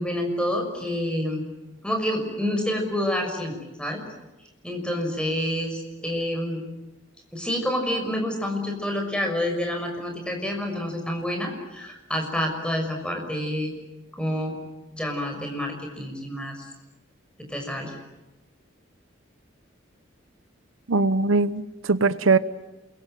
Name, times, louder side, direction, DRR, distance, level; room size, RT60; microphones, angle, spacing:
voice 1, 0.0-1.4 1.8-4.0 4.6-6.6 7.3-13.7 14.2-14.5 14.9-16.7 17.5-18.0, left 1 dB, 5° left, 6.2 m, -28 dB
voice 2, 20.9-22.4, right 3 dB, 90° right, 1.0 m, -21 dB
28.5 x 23.0 x 9.2 m
head